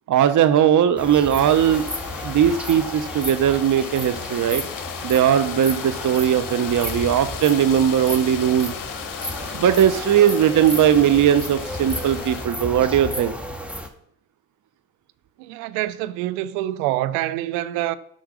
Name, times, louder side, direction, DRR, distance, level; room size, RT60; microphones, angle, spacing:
voice 1, 0.1-1.8 2.2-4.7 5.0-8.8 9.5-13.3, right 9 dB, 40° right, 0.8 m, -19 dB
sound 1, 1.0-13.9, equal, 5° right, 1.7 m, -33 dB
sound 2, 1.4-12.5, left 10 dB, 45° left, 0.9 m, -36 dB
voice 2, 15.4-18.0, right 15 dB, 75° right, 0.7 m, -26 dB
8.1 x 6.2 x 6.2 m
hypercardioid pair, 50°, 45 cm